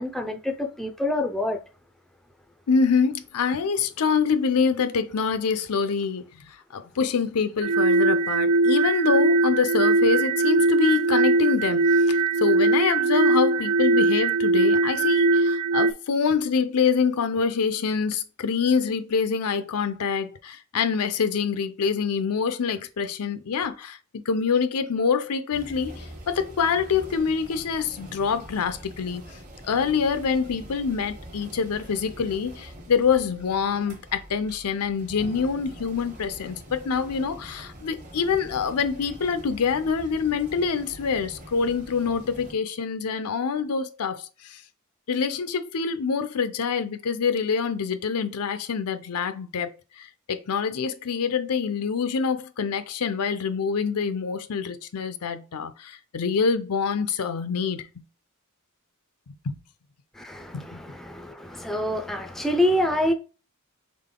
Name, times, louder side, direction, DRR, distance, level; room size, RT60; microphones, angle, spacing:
voice 1, 0.0-1.6 60.1-63.1, left 1 dB, ahead, 0.4 m, -26 dB
voice 2, 2.7-24.0 24.3-29.2 29.6-44.6 45.1-49.7 50.0-57.9 59.4-59.6 60.5-60.8, left 6 dB, 85° left, 0.5 m, -25 dB
sound 1, 7.6-15.9, right 3 dB, 85° right, 0.3 m, -20 dB
sound 2, 25.5-42.5, right 1 dB, 35° right, 1.2 m, -44 dB
3.8 x 3.6 x 3.7 m
head